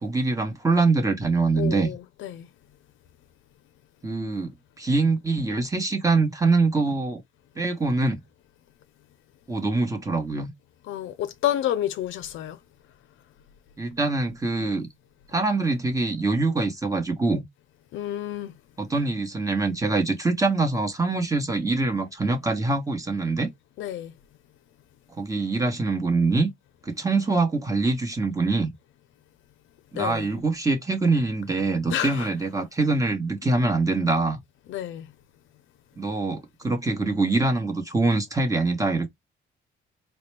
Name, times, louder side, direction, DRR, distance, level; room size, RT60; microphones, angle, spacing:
voice 1, 0.0-1.9 4.0-7.2 7.6-8.2 9.5-10.5 13.8-14.9 15.3-17.4 18.8-23.5 25.2-26.5 26.8-28.7 29.9-34.4 36.0-39.1, right 3 dB, 15° right, 1.1 m, -24 dB
voice 2, 1.6-2.5 10.9-12.6 17.9-18.5 23.8-24.1 29.9-30.3 31.9-32.3 34.7-35.1, left 11 dB, 80° left, 0.5 m, -29 dB
4.0 x 2.2 x 3.2 m
cardioid pair, 90°, 20 cm